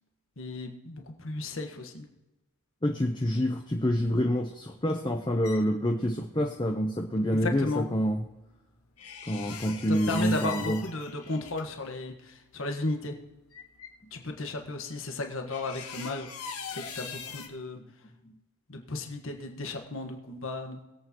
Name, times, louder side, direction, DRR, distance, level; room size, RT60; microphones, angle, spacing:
voice 1, 0.4-2.1 7.3-7.9 9.9-13.2 14.1-17.8 18.7-20.8, left 2 dB, 65° left, 3 dB, 1.5 m, -34 dB
voice 2, 2.8-8.2 9.3-10.8 18.2-18.3, equal, 20° left, 3 dB, 0.8 m, -27 dB
sound 1, 4.9-5.6 9.0-11.6 12.7-12.8 13.0-13.1 13.5-13.9 15.5-17.5, left 6 dB, 85° left, 1.7 m, -41 dB
21.5 x 8.3 x 3.0 m, 1.0 s
head